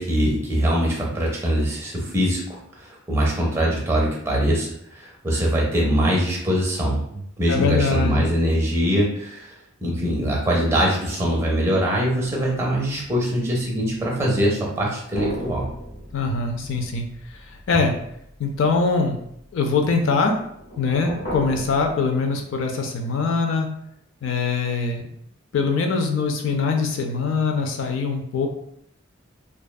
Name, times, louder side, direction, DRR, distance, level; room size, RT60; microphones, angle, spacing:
voice 1, 0.0-7.0 7.4-9.5 9.8-15.6, equal, 15° right, -3 dB, 0.5 m, -22 dB
voice 2, 7.5-8.3 16.1-17.9 18.4-19.2 19.5-20.3 20.8-23.7 24.2-25.1 25.5-28.5, left 4 dB, 70° left, 3 dB, 0.4 m, -23 dB
sound 1, 13.0-13.9 15.1-19.3 20.4-21.9, right 1 dB, 45° left, 0.8 m, -37 dB
2.5 x 2.2 x 2.2 m, 0.73 s
head